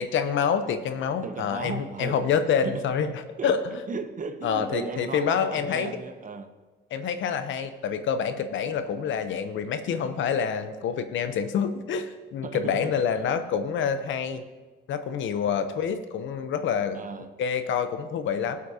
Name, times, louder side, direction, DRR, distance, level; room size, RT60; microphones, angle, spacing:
voice 1, 0.0-3.1 3.4-3.8 4.4-5.9 6.9-14.4 14.9-17.0 17.4-18.6, left 7 dB, 75° left, 10 dB, 0.9 m, -27 dB
voice 2, 1.2-2.3 2.6-2.8 3.4-3.6 3.9-6.5 12.4-13.0 16.9-17.3, right 5 dB, 40° right, 9 dB, 0.9 m, -36 dB
17.5 x 8.4 x 2.9 m, 1.3 s
cardioid pair, 90°, 20 cm